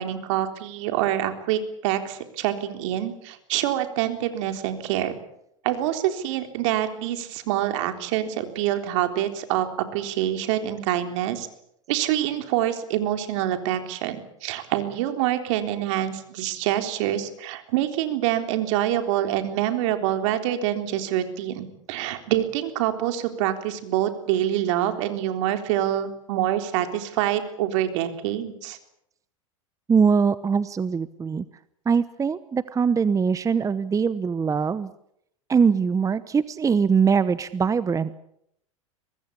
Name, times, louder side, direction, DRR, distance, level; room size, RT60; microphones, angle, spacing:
voice 1, 0.0-5.1 5.6-11.5 11.9-28.8, right 12 dB, 65° right, 7 dB, 3.8 m, -26 dB
voice 2, 29.9-31.4 31.8-34.9 35.5-38.1, right 6 dB, 20° right, 15 dB, 1.0 m, -22 dB
24.0 x 20.5 x 8.5 m, 0.76 s
hypercardioid pair, 95°, 17 cm